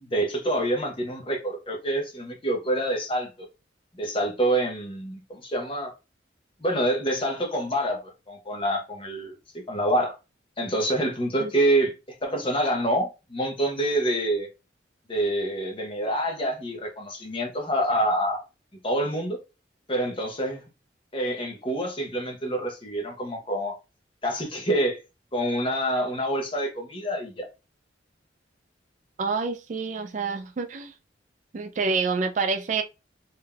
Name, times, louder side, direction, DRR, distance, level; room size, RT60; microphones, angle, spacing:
voice 1, 0.0-3.3 3.9-5.9 6.6-10.2 10.6-11.9 12.2-14.5 15.1-18.4 18.8-19.4 19.9-20.6 21.1-23.7 24.2-25.0 25.3-27.5, right 1 dB, 30° left, 0.8 m, -27 dB
voice 2, 29.2-30.9 31.5-32.8, right 4 dB, 40° right, 0.3 m, -27 dB
3.5 x 2.7 x 2.3 m
head